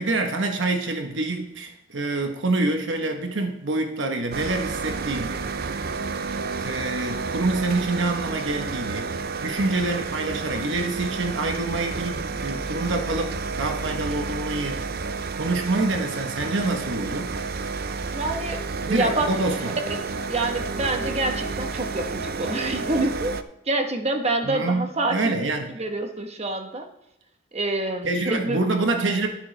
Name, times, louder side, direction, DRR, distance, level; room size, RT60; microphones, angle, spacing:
voice 1, 0.0-5.8 6.6-17.3 18.8-19.8 24.4-25.7 28.0-29.3, right 2 dB, 80° right, 4 dB, 1.1 m, -26 dB
sound 1, 4.3-23.4, right 4 dB, 55° right, 0.5 m, -31 dB
voice 2, 18.1-18.6 18.8-19.3 20.1-23.4 23.7-25.3 25.7-26.9 27.5-28.6, right 2 dB, 35° right, 4 dB, 1.1 m, -26 dB
11.0 x 10.0 x 3.3 m, 0.85 s
head